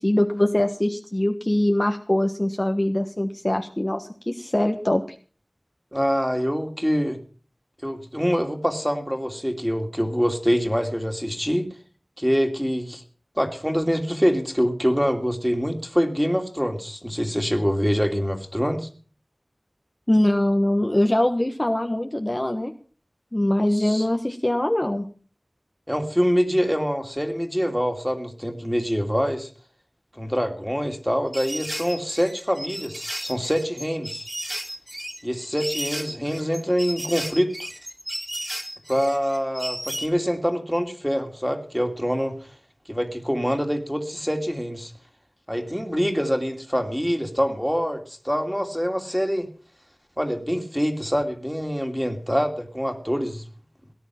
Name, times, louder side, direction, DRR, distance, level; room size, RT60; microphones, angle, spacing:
voice 1, 0.0-5.0 20.1-22.7 23.3-25.0, left 1 dB, 30° left, 4 dB, 1.3 m, -22 dB
voice 2, 5.9-7.2 7.8-11.7 12.2-13.0 13.4-18.9 23.7-24.0 25.9-29.5 30.1-34.3 35.2-37.7 38.9-42.5 42.9-44.9 45.5-49.5 50.2-53.5, equal, ahead, 4 dB, 2.7 m, -25 dB
sound 1, 31.3-40.1, equal, 20° right, 3.1 m, -34 dB
18.0 x 10.0 x 5.9 m, 0.41 s
wide cardioid pair, 45°, 0 cm